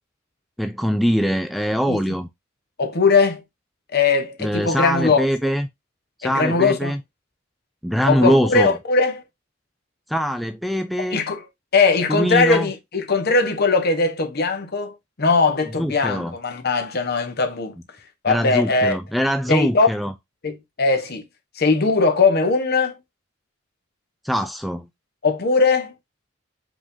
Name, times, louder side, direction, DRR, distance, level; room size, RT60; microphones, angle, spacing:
voice 1, 0.6-2.3 4.4-5.7 6.2-7.0 7.8-8.7 10.1-11.2 12.1-12.7 15.8-16.3 18.3-20.1 24.2-24.9, equal, ahead, 0.3 m, -22 dB
voice 2, 2.8-3.4 3.9-5.3 6.2-6.9 8.1-9.2 11.1-11.4 11.7-17.7 18.2-19.0 19.5-19.9 20.4-21.2 21.6-23.0 25.2-25.9, left 4 dB, 55° left, 0.9 m, -20 dB
4.9 x 3.7 x 2.6 m
head